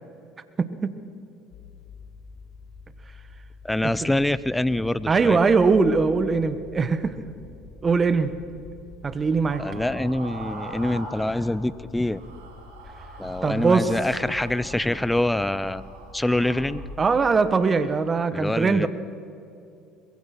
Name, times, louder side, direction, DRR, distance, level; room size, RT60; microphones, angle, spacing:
voice 1, 0.6-0.9 3.8-3.9 5.1-7.1 7.8-8.3 9.0-9.6 13.4-13.9 17.0-18.9, right 4 dB, 30° right, 11 dB, 1.5 m, -21 dB
sound 1, 1.5-17.4, left 3 dB, 55° left, 4.3 m, -45 dB
voice 2, 3.6-5.4 9.6-12.2 13.2-15.8 16.1-16.8 18.3-18.9, left 1 dB, 10° left, 17 dB, 0.8 m, -25 dB
sound 2, 9.5-11.7 12.0-16.6, right 3 dB, 85° right, 5.0 m, -42 dB
22.5 x 22.5 x 6.1 m, 2.6 s
hypercardioid pair, 75°, 0 cm